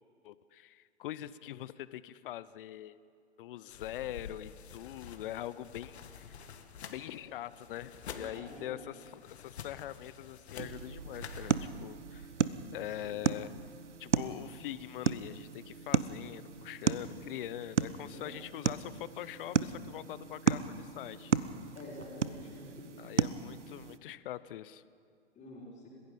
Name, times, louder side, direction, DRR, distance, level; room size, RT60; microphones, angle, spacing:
voice 1, 0.2-3.0 3.4-6.5 6.9-12.3 12.7-13.5 14.0-21.3 23.0-24.8, left 13 dB, 50° left, 16 dB, 0.8 m, -43 dB
sound 1, 3.7-11.6, left 7 dB, 65° left, 1.7 m, -49 dB
voice 2, 8.0-8.9 13.0-13.2 18.1-18.3 21.7-22.9 25.4-25.9, left 1 dB, 20° left, -4 dB, 5.5 m, -48 dB
sound 2, 10.6-24.0, right 6 dB, 85° right, 0.8 m, -35 dB
30.0 x 16.0 x 5.4 m, 2.3 s
figure-of-eight pair, 110°, 35 cm